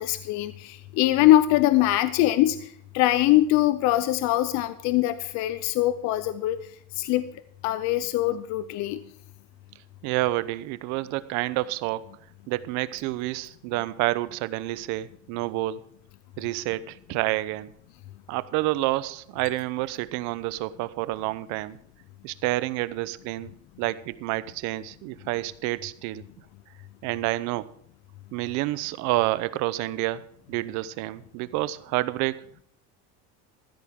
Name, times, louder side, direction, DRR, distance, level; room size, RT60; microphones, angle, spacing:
voice 1, 0.0-6.6 6.9-7.3 7.6-9.0, left 14 dB, 60° left, 13 dB, 0.7 m, -22 dB
voice 2, 10.0-12.1 12.5-15.8 16.4-17.7 18.3-21.8 22.2-23.5 23.8-26.2 27.0-27.7 28.3-30.2 30.5-32.4, right 17 dB, 60° right, 17 dB, 0.8 m, -29 dB
14.5 x 13.0 x 3.7 m, 0.65 s
cardioid pair, 145°, 32 cm